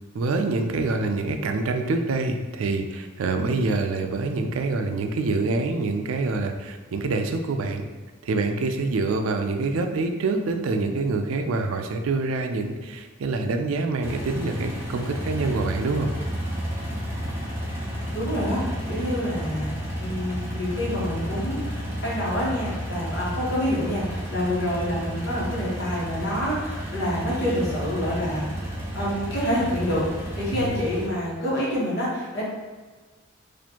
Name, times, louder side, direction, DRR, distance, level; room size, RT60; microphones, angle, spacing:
voice 1, 0.1-7.8 8.2-16.1 30.5-30.7, right 3 dB, 90° right, 6 dB, 0.4 m, -26 dB
sound 1, 14.0-31.1, equal, 10° right, 0.6 m, -32 dB
voice 2, 18.1-30.0 30.3-32.4, equal, 55° left, -6 dB, 1.2 m, -27 dB
4.3 x 2.5 x 2.8 m, 1.3 s
head